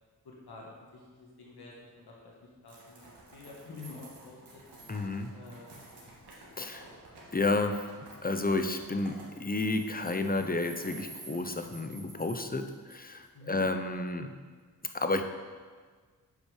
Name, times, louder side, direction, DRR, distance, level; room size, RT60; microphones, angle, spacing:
voice 1, 0.2-2.3 2.6-4.6 5.3-5.7 6.0-6.2 6.5-7.3 13.3-13.6, left 3 dB, 75° left, -3 dB, 1.7 m, -49 dB
sound 1, 2.7-13.2, right 2 dB, 85° right, 1.8 m, -51 dB
voice 2, 4.9-5.3 6.6-6.8 7.3-7.8 8.2-14.3 14.8-15.2, left 2 dB, 25° left, 7 dB, 0.8 m, -31 dB
8.1 x 5.3 x 5.0 m, 1.5 s
cardioid pair, 40°, 39 cm